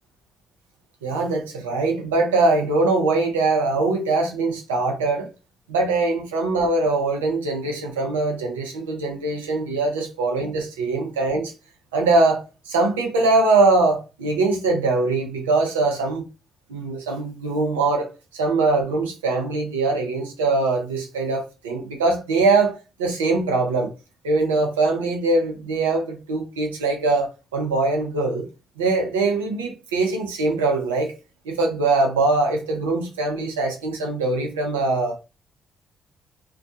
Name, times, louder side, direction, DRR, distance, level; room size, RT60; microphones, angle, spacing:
voice 1, 1.0-5.3 5.7-11.5 11.9-16.2 16.7-23.9 24.2-28.5 28.8-31.1 31.4-35.2, right 3 dB, 85° right, 0.6 m, -22 dB
2.3 x 2.2 x 2.7 m
hypercardioid pair, 45°, 0 cm